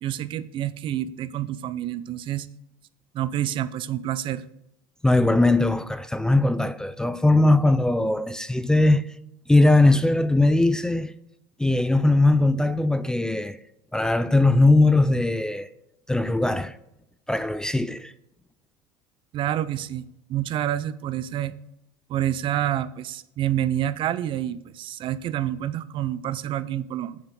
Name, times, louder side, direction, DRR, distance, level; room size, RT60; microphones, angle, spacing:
voice 1, 0.0-2.5 3.1-4.5 19.3-21.6 22.1-27.2, right 11 dB, 45° right, 0.6 m, -28 dB
voice 2, 5.0-9.0 9.5-11.1 11.6-13.6 13.9-15.7 16.1-16.7 17.3-18.1, left 2 dB, 5° left, 0.4 m, -20 dB
7.2 x 5.8 x 6.2 m
supercardioid pair, 105°, 11 cm